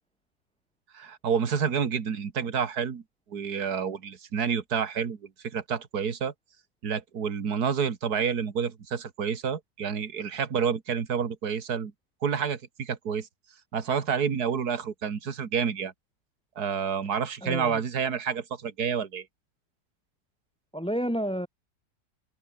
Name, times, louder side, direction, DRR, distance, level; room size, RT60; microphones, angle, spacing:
voice 1, 0.9-3.0 3.3-6.3 6.8-11.9 12.2-13.3 13.7-15.9 16.6-19.3, right 7 dB, 65° right, 2.4 m, -29 dB
voice 2, 17.4-17.8 20.7-21.5, equal, 5° left, 3.5 m, -30 dB
omnidirectional pair, 1.8 m